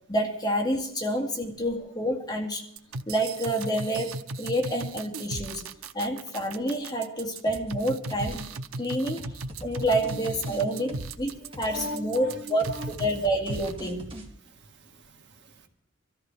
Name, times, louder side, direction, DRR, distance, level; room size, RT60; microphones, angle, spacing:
voice 1, 0.1-2.6 3.1-5.6 5.9-8.4 8.8-9.3 9.6-11.3 11.6-14.1, right 1 dB, 20° left, 0 dB, 2.0 m, -28 dB
sound 1, 2.8-13.2 13.5-13.7, right 2 dB, 90° right, 0.8 m, -36 dB
sound 2, 7.5-7.8 8.1-8.5 8.7-11.2 11.5-11.9 12.2-14.3, right 1 dB, 25° right, 2.6 m, -43 dB
voice 2, 9.7-10.2 10.5-11.0 11.3-12.9 14.6-15.7, equal, 60° right, 4 dB, 1.7 m, -41 dB
24.0 x 14.0 x 3.4 m, 0.70 s
head